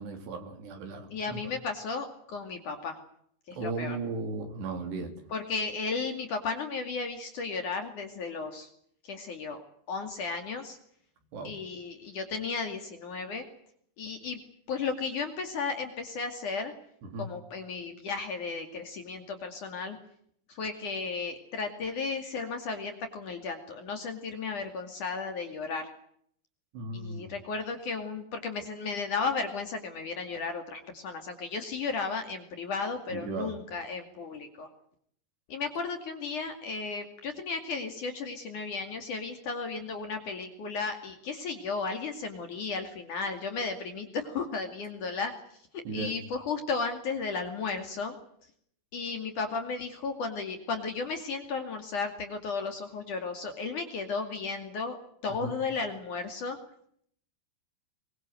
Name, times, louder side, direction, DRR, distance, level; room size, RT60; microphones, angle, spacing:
voice 1, 0.0-1.4 3.5-5.1 11.3-11.5 17.0-17.3 26.7-27.3 33.1-33.6 45.9-46.1 55.4-55.6, right 3 dB, 70° right, 5 dB, 5.7 m, -36 dB
voice 2, 1.1-3.0 3.5-4.0 5.3-8.7 9.0-9.6 9.9-10.8 11.4-13.4 14.0-14.4 14.7-16.7 17.2-20.0 20.5-25.9 26.9-34.7 35.5-45.3 45.7-48.2 48.9-55.0 55.2-56.6, left 4 dB, 50° left, 6 dB, 3.6 m, -34 dB
23.5 x 22.5 x 7.8 m, 0.66 s
omnidirectional pair, 5.0 m